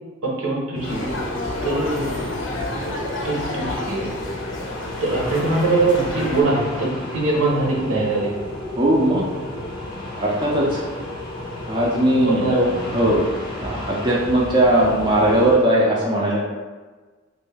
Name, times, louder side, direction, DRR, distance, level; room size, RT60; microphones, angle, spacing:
voice 1, 0.2-1.2 1.6-2.3 2.5-2.6 3.2-4.1 5.0-8.3 12.3-12.8, right 2 dB, 80° right, -2 dB, 0.9 m, -22 dB
sound 1, 0.7-15.6, left 1 dB, 20° left, 0.6 m, -33 dB
sound 2, 0.8-6.4, left 1 dB, 65° left, 0.5 m, -30 dB
voice 2, 8.8-9.2 10.2-10.8 11.7-13.2 13.6-16.4, right 1 dB, 20° right, -4 dB, 0.4 m, -19 dB
3.0 x 2.6 x 3.3 m, 1.4 s
head